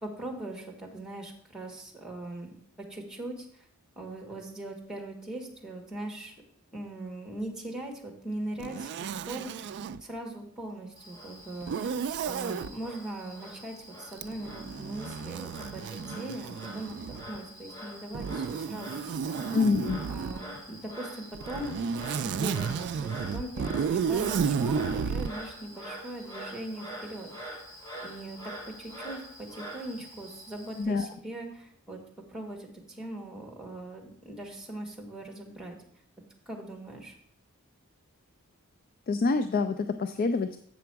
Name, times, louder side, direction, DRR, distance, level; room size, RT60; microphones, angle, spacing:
voice 1, 0.0-2.5 2.9-3.6 4.0-6.4 6.7-9.8 10.0-12.0 12.2-19.6 20.1-21.8 22.2-27.3 28.0-32.0 32.3-35.8 36.5-37.1, right 1 dB, 5° right, 2 dB, 1.3 m, -40 dB
Zipper (clothing), 8.6-10.0 11.6-12.7 14.1-17.4 18.1-20.4 21.3-25.3, right 6 dB, 50° right, 0.3 m, -32 dB
Frog, 11.0-30.8, equal, 15° left, 1.6 m, -45 dB
voice 2, 19.5-20.0 30.8-31.1 39.1-40.6, left 4 dB, 40° left, 9 dB, 0.3 m, -26 dB
7.7 x 6.0 x 4.6 m, 0.64 s
head